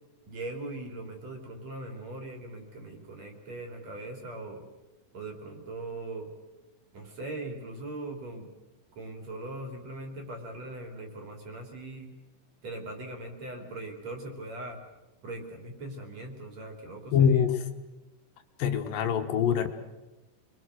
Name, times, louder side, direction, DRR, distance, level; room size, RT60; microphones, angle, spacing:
voice 1, 0.3-4.6 5.1-6.3 6.9-8.5 9.0-12.1 12.6-14.8 15.2-17.5, right 2 dB, 50° right, 3 dB, 4.1 m, -40 dB
voice 2, 17.1-17.5 18.6-19.7, left 8 dB, 75° left, 6 dB, 2.9 m, -24 dB
28.0 x 22.5 x 6.4 m, 1.1 s
omnidirectional pair, 4.2 m